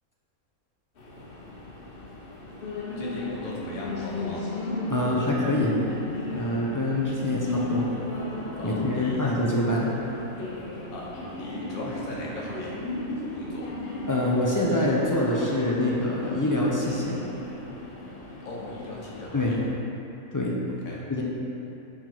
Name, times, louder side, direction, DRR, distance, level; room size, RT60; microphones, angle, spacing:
sound 1, 1.0-19.6, left 2 dB, 45° left, 1.0 m, -35 dB
voice 1, 3.0-4.4 8.6-9.3 10.4-12.8 13.3-13.7 18.4-19.6 20.8-21.0, left 2 dB, 75° left, -4 dB, 1.5 m, -39 dB
voice 2, 4.9-5.7 6.3-7.9 8.6-9.9 14.1-17.2 19.3-19.5 20.3-20.6 21.1-21.2, left 1 dB, 30° left, -5 dB, 0.4 m, -25 dB
7.4 x 3.9 x 4.5 m, 2.9 s
omnidirectional pair, 1.5 m